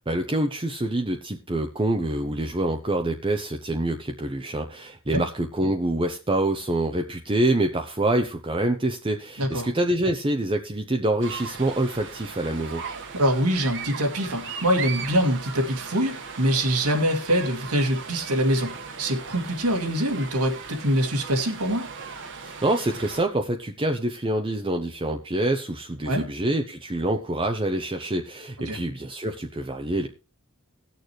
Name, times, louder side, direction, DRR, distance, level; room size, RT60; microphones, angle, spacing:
voice 1, 0.1-12.8 22.4-30.1, right 1 dB, 25° right, 0.8 m, -26 dB
sound 1, 11.2-23.2, right 5 dB, 55° right, 1.5 m, -38 dB
voice 2, 13.1-21.9 26.1-26.3 28.7-28.8, equal, 85° right, 2.4 m, -24 dB
18.5 x 6.7 x 3.1 m
head